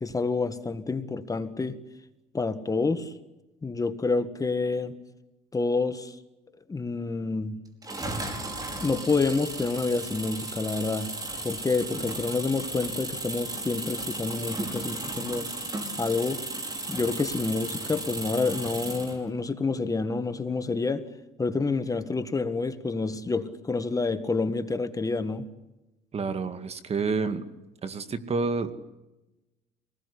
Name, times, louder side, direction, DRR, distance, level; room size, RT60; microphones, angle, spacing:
voice 1, 0.0-1.8 2.3-3.1 3.6-4.9 5.5-6.2 6.7-7.6 8.8-11.1 11.4-15.5 16.0-16.4 16.9-21.1 21.4-25.5, left 3 dB, 20° left, 10 dB, 1.7 m, -28 dB
sound 1, 7.8-19.2, right 2 dB, 20° right, 5.2 m, -35 dB
voice 2, 26.1-27.4 27.8-28.8, right 4 dB, 35° right, 10 dB, 2.1 m, -29 dB
26.5 x 20.0 x 9.9 m, 1.0 s
cardioid pair, 110°, 17 cm